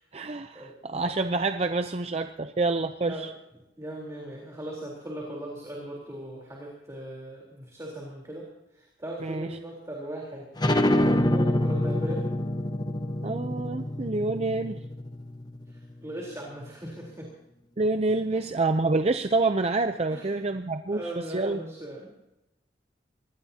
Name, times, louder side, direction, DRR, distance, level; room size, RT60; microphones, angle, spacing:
voice 1, 0.1-3.3 9.2-9.5 13.2-14.8 17.8-21.6, right 3 dB, 35° right, 8 dB, 0.6 m, -27 dB
voice 2, 3.8-8.5 8.7-12.3 15.7-17.3 18.3-18.5 20.1-20.5 20.9-22.3, right 1 dB, 20° right, -3 dB, 3.8 m, -39 dB
sound 1, 10.6-15.8, left 1 dB, 25° left, 1.1 m, -26 dB
24.0 x 19.5 x 2.9 m, 0.89 s
head